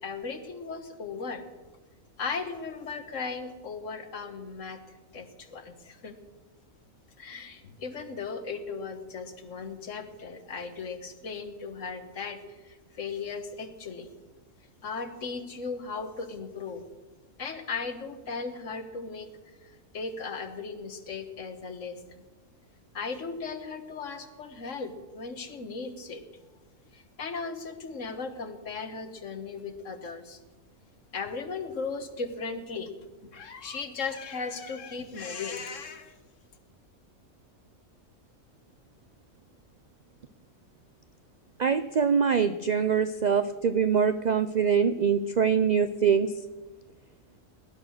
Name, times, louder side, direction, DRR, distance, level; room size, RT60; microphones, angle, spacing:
voice 1, 0.0-1.5 2.2-4.8 5.1-6.1 7.2-14.1 14.8-16.8 17.4-19.7 19.9-22.0 22.9-26.2 26.9-30.4 31.1-32.9 33.3-36.2, left 4 dB, 65° left, 9 dB, 1.6 m, -37 dB
voice 2, 41.6-46.3, right 6 dB, 65° right, 12 dB, 0.4 m, -24 dB
18.5 x 11.0 x 6.4 m, 1.2 s
omnidirectional pair, 1.4 m